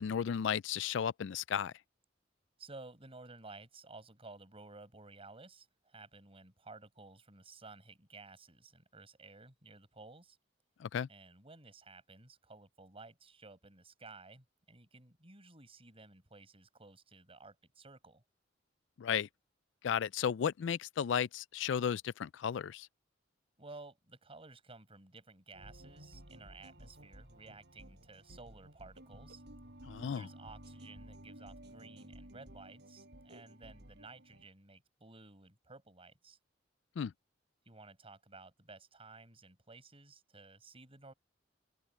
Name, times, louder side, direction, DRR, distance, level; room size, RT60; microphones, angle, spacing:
voice 1, 0.0-1.7 10.8-11.1 19.0-19.3 19.8-22.9 29.9-30.3 37.0-37.1, left 8 dB, 70° left, 0.4 m, -34 dB
voice 2, 2.6-10.4 11.1-18.2 23.6-29.4 30.1-36.4 37.7-41.1, right 3 dB, 30° right, 7.6 m, -54 dB
sound 1, 25.5-34.5, right 1 dB, 60° right, 7.3 m, -54 dB
open air
head